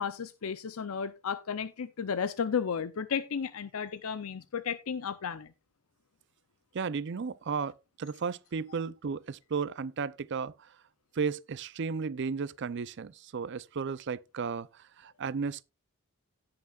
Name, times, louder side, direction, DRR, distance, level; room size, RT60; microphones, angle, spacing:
voice 1, 0.0-5.5, left 6 dB, 80° left, 0.5 m, -33 dB
voice 2, 6.7-10.7 11.1-15.6, right 5 dB, 55° right, 0.5 m, -34 dB
17.5 x 5.9 x 2.4 m
head